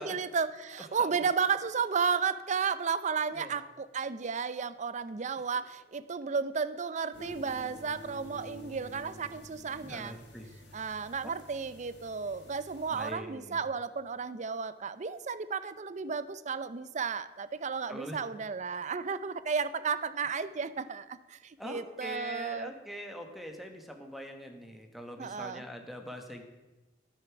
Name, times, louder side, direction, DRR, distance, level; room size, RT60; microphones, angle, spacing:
voice 1, 0.0-10.1 10.7-22.7 25.2-25.6, right 5 dB, 40° right, 14 dB, 0.5 m, -33 dB
sound 1, 7.1-13.1, equal, 80° left, 3.2 m, -50 dB
voice 2, 9.8-10.8 11.2-11.3 12.9-13.6 17.9-18.2 21.6-26.4, equal, ahead, 4 dB, 1.4 m, -43 dB
12.0 x 9.3 x 6.1 m, 1.1 s
head